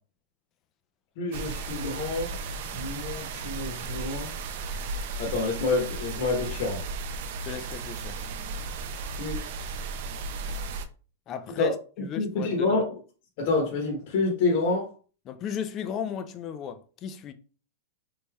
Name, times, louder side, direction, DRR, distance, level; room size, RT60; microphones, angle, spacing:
voice 1, 1.2-2.4 2.7-4.3 5.2-6.8 9.2-9.5 11.6-11.7 12.0-12.9 13.4-14.9, left 3 dB, 45° left, 0.9 m, -28 dB
sound 1, 1.3-10.9, right 4 dB, 50° right, 0.4 m, -35 dB
voice 2, 7.4-8.2 11.3-12.8 15.3-17.3, left 8 dB, 25° left, 0.3 m, -35 dB
4.0 x 3.3 x 2.3 m
supercardioid pair, 165°, 0 cm